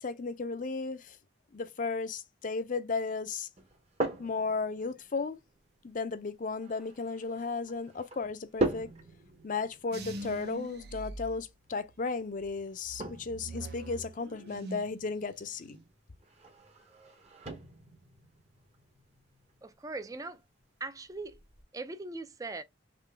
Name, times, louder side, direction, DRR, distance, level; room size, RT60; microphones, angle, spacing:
voice 1, 0.0-1.2 1.5-3.5 4.2-5.4 5.8-8.9 9.4-15.8, left 4 dB, 45° left, 0.5 m, -35 dB
sound 1, 3.6-21.6, right 1 dB, 35° right, 0.9 m, -42 dB
sound 2, 9.9-12.0 12.4-15.0 15.3-15.9, right 2 dB, 60° right, 0.7 m, -44 dB
voice 2, 19.6-20.4 20.8-21.4 21.7-22.6, right 3 dB, 20° right, 0.4 m, -40 dB
3.8 x 3.2 x 3.3 m
head